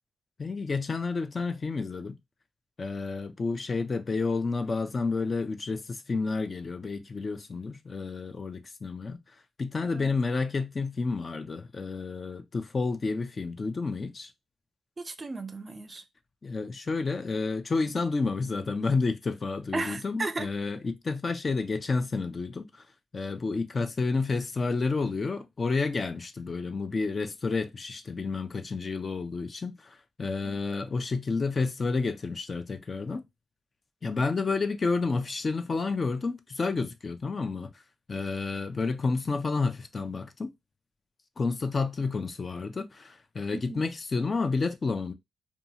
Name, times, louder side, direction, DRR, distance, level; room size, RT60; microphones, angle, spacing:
voice 1, 0.4-2.2 2.8-9.2 9.6-14.3 16.4-22.8 23.1-33.2 34.0-37.7 38.1-40.5 41.4-45.1, left 4 dB, 40° left, 0.4 m, -30 dB
voice 2, 15.0-16.0 19.7-20.5 30.4-30.6 43.5-43.9, right 3 dB, 35° right, 0.5 m, -35 dB
2.7 x 2.3 x 2.7 m
cardioid pair, 70°, 0 cm